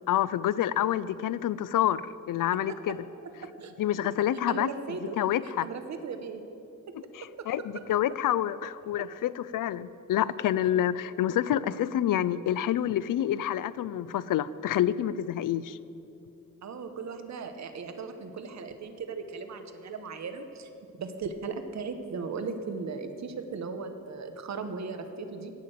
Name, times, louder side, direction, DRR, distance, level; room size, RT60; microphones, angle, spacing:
voice 1, 0.1-3.0 3.8-4.7 5.0-5.7 7.1-15.8, left 11 dB, 70° left, 17 dB, 0.5 m, -28 dB
voice 2, 4.5-5.2 5.4-6.4 7.4-7.5 7.7-7.8 16.6-20.7 21.0-25.5, right 4 dB, 55° right, 8 dB, 0.9 m, -37 dB
10.5 x 8.3 x 7.7 m, 2.7 s
wide cardioid pair, 115°, 33 cm